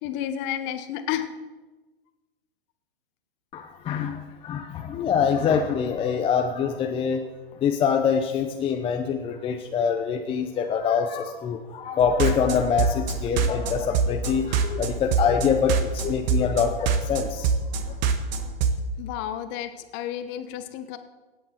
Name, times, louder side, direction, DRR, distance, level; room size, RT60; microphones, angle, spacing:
voice 1, 0.0-1.3 19.0-21.0, left 11 dB, 35° left, 9 dB, 1.2 m, -31 dB
voice 2, 3.5-7.3 7.6-17.5, left 7 dB, 15° left, 4 dB, 0.7 m, -25 dB
sound 1, 12.0-18.7, right 6 dB, 45° right, 1.4 m, -25 dB
17.5 x 8.7 x 4.5 m, 1.2 s
hypercardioid pair, 115°, 31 cm